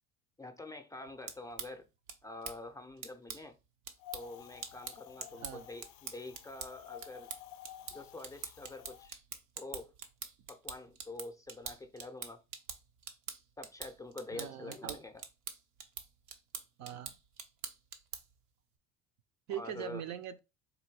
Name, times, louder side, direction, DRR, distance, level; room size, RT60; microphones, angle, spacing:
voice 1, 0.4-1.9 2.2-3.6 4.1-7.3 7.9-9.2 9.6-9.9 10.5-12.4 13.6-15.2 19.5-20.0, left 2 dB, 10° left, 0.5 m, -46 dB
sound 1, 1.0-18.4, right 7 dB, 90° right, 0.9 m, -47 dB
Wind, 4.0-9.1, left 12 dB, 60° left, 0.5 m, -52 dB
voice 2, 5.3-5.7 14.3-15.0 16.8-17.2 19.5-20.4, right 9 dB, 55° right, 0.6 m, -41 dB
4.0 x 2.6 x 4.6 m
supercardioid pair, 110°, 33 cm